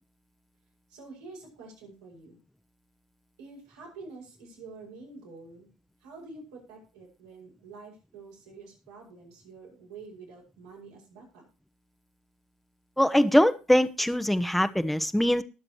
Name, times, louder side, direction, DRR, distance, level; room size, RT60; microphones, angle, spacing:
voice 1, 0.9-2.4 3.4-5.7 6.0-11.4, right 3 dB, 85° right, -2 dB, 6.8 m, -47 dB
voice 2, 13.0-15.4, left 1 dB, 5° left, 11 dB, 0.9 m, -22 dB
20.0 x 7.6 x 3.1 m, 0.34 s
hypercardioid pair, 60°, 3 cm